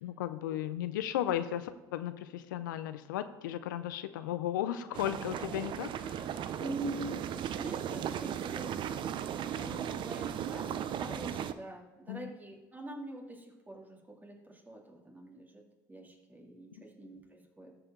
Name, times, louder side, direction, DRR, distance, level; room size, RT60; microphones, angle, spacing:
voice 1, 0.0-6.2 12.1-12.3, left 11 dB, 85° left, 12 dB, 0.5 m, -35 dB
sound 1, 4.9-11.5, right 9 dB, 50° right, 0.5 m, -36 dB
voice 2, 6.6-15.6 15.9-17.7, right 1 dB, 15° right, -1 dB, 2.7 m, -44 dB
13.5 x 4.9 x 3.8 m, 1.1 s
hypercardioid pair, 75°, 10 cm